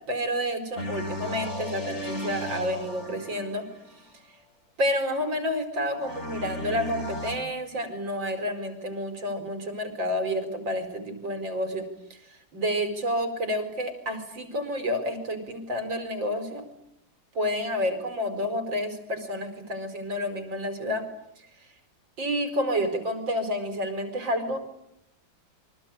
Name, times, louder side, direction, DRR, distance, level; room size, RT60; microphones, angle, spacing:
voice 1, 0.1-3.7 4.8-16.6 17.4-21.1 21.4-21.5 22.2-24.6, equal, 85° right, 8 dB, 5.3 m, -29 dB
sound 1, 0.8-4.0 5.9-7.4, left 2 dB, 35° left, 5.0 m, -35 dB
28.0 x 24.5 x 8.5 m, 0.79 s
omnidirectional pair, 2.0 m